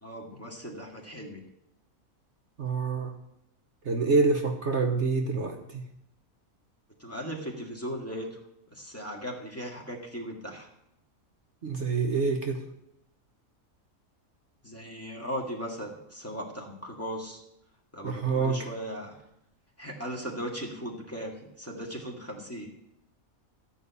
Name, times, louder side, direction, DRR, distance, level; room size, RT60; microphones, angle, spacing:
voice 1, 0.0-1.4 7.0-8.4 8.7-10.7 14.6-17.4 17.9-19.1 19.8-22.7, equal, 10° left, -2 dB, 2.1 m, -38 dB
voice 2, 2.6-3.1 3.8-5.8 11.6-12.6 18.0-18.7, right 4 dB, 55° right, 3 dB, 1.3 m, -27 dB
14.0 x 5.4 x 8.3 m, 0.81 s
omnidirectional pair, 1.5 m